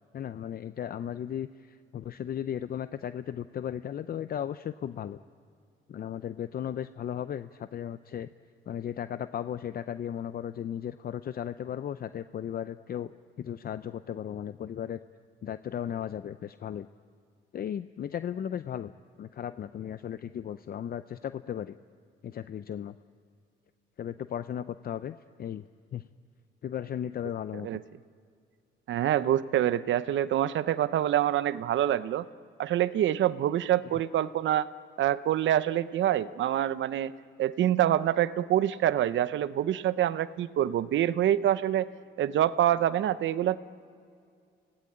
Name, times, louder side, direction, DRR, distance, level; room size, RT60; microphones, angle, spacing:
voice 1, 0.1-5.2 5.9-8.3 8.7-13.1 13.4-15.0 15.4-16.9 17.5-18.9 19.2-21.8 22.2-22.9 24.0-25.6 25.9-26.1 26.6-27.7, left 9 dB, 50° left, 12 dB, 0.6 m, -36 dB
voice 2, 28.9-32.2 32.6-34.7 35.0-37.1 37.4-41.9 42.2-43.6, right 11 dB, 70° right, 15 dB, 0.8 m, -26 dB
28.5 x 17.5 x 8.8 m, 2.3 s
cardioid pair, 90°, 20 cm